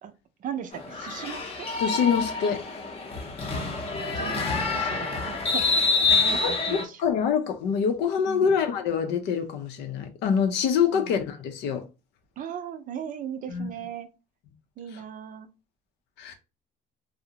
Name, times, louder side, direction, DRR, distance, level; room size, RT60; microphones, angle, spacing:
voice 1, 0.4-1.7 3.4-7.0 8.3-8.6 10.9-11.1 12.4-14.1 14.8-15.5, right 8 dB, 50° right, 0.5 m, -38 dB
sound 1, 0.7-6.8, left 4 dB, 35° left, 0.6 m, -27 dB
voice 2, 1.8-2.6 6.4-11.8 13.5-13.7 16.2-16.3, left 7 dB, 85° left, 0.6 m, -25 dB
2.4 x 2.0 x 2.8 m
cardioid pair, 110°, 17 cm